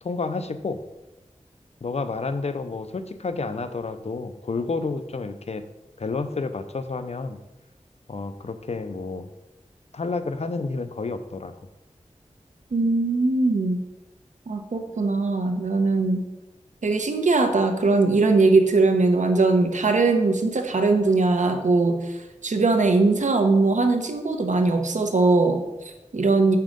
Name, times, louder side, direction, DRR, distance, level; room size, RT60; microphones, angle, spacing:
voice 1, 0.0-0.8 1.8-5.6 6.0-7.4 8.1-9.3 9.9-11.5, left 3 dB, 60° left, 10 dB, 0.6 m, -30 dB
voice 2, 12.7-13.8 14.5-16.2 16.8-26.6, right 3 dB, 90° right, 6 dB, 0.9 m, -21 dB
7.4 x 5.7 x 5.2 m, 1.0 s
wide cardioid pair, 70°, 12 cm